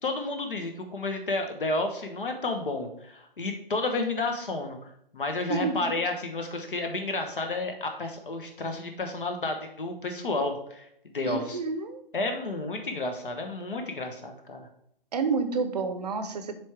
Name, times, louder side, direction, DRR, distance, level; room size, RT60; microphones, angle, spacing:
voice 1, 0.0-4.8 5.1-10.9 11.1-11.6 12.1-14.7, left 2 dB, 65° left, 5 dB, 1.2 m, -31 dB
voice 2, 5.5-5.8 11.2-12.0 15.1-16.6, right 4 dB, 45° right, 8 dB, 0.7 m, -29 dB
7.4 x 3.4 x 4.5 m, 0.71 s
figure-of-eight pair, 135°, 29 cm